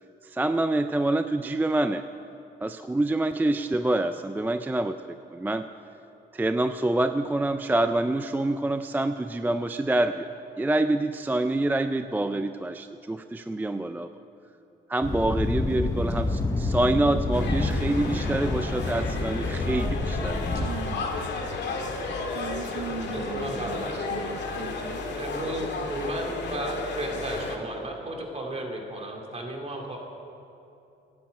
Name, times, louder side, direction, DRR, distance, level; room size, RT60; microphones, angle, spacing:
voice 1, 0.2-2.0 2.6-5.0 5.3-5.7 6.3-10.3 10.6-14.1 14.9-20.4, right 2 dB, 10° right, 9 dB, 0.4 m, -26 dB
Thunder, 15.0-20.7, left 2 dB, 15° left, 1.2 m, -28 dB
sound 1, 17.3-27.6, left 3 dB, 65° left, 1.8 m, -33 dB
voice 2, 20.6-21.4 22.3-25.0, right 7 dB, 80° right, 7 dB, 0.8 m, -39 dB
voice 3, 23.1-24.3 25.1-30.0, right 1 dB, 30° right, 1 dB, 2.7 m, -34 dB
12.5 x 9.5 x 8.6 m, 2.8 s
cardioid pair, 90°, 20 cm